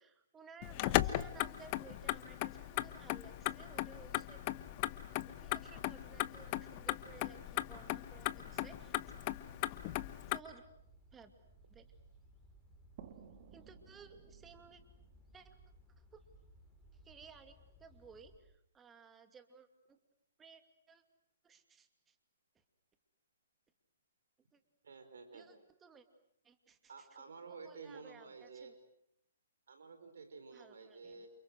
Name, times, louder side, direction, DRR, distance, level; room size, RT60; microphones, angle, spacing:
voice 1, 0.0-4.4 5.3-9.0 10.3-10.7 11.1-11.3 11.7-11.9 13.5-14.8 15.3-15.6 16.1-16.2 17.0-20.0 20.4-20.6 20.9-21.0 21.4-22.1 24.5-24.6 25.3-26.0 26.4-27.3 27.6-28.7 30.5-31.3, right 5 dB, 15° right, 8 dB, 2.6 m, -58 dB
Motor vehicle (road), 0.6-10.4, left 16 dB, 35° left, 1.2 m, -38 dB
sound 1, 4.3-18.4, right 1 dB, ahead, 6.5 m, -63 dB
sound 2, 13.0-16.5, right 8 dB, 45° right, 2.3 m, -58 dB
voice 2, 24.8-25.5 26.9-28.8 29.7-31.3, right 4 dB, 70° right, 8 dB, 4.9 m, -51 dB
29.5 x 28.5 x 6.4 m, 0.76 s
figure-of-eight pair, 130°, 0 cm